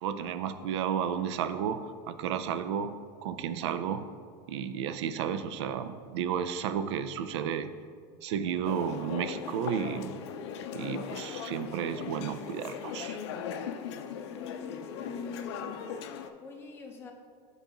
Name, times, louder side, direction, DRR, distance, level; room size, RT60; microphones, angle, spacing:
voice 1, 0.0-4.1 4.5-7.7 8.2-10.2 10.7-13.2, right 8 dB, 85° right, 11 dB, 0.4 m, -32 dB
sound 1, 8.6-16.3, left 7 dB, 85° left, 0.5 m, -39 dB
voice 2, 14.2-15.8 16.4-17.1, left 5 dB, 15° left, 0 dB, 0.7 m, -43 dB
9.1 x 3.9 x 2.9 m, 2.1 s
supercardioid pair, 130°, 14 cm